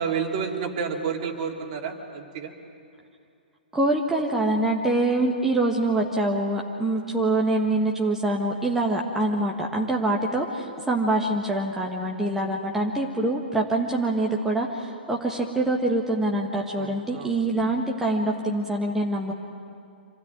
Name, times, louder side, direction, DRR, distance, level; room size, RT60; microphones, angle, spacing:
voice 1, 0.0-2.5 16.7-17.3, right 6 dB, 40° right, 2 dB, 2.9 m, -30 dB
voice 2, 3.7-19.3, right 2 dB, 5° right, -1 dB, 1.6 m, -25 dB
26.5 x 17.0 x 9.3 m, 2.5 s
figure-of-eight pair, 115°, 5 cm